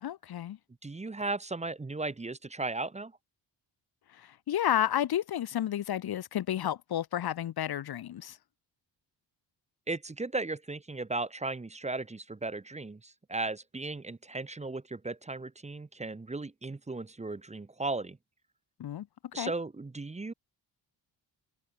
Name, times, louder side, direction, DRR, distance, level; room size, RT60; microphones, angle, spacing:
voice 1, 0.0-0.6 4.1-8.4 18.8-19.1 19.4-19.5, left 11 dB, 55° left, 1.0 m, -31 dB
voice 2, 0.8-3.1 9.9-18.2 19.3-20.3, right 3 dB, 15° right, 1.4 m, -36 dB
wide cardioid pair, 155°, 44 cm